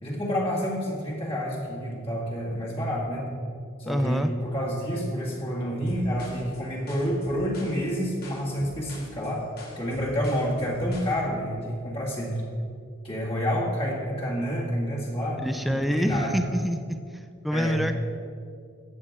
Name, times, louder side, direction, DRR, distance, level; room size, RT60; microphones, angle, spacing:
voice 1, 0.0-3.3 3.8-9.4 9.8-12.4 13.0-16.3 17.5-17.8, equal, 25° left, -5 dB, 2.1 m, -29 dB
voice 2, 3.9-4.3 15.4-17.0 17.4-17.9, equal, ahead, 8 dB, 0.4 m, -26 dB
sound 1, 5.9-11.1, left 1 dB, 45° left, 2.2 m, -45 dB
14.5 x 8.9 x 3.7 m, 2.3 s
head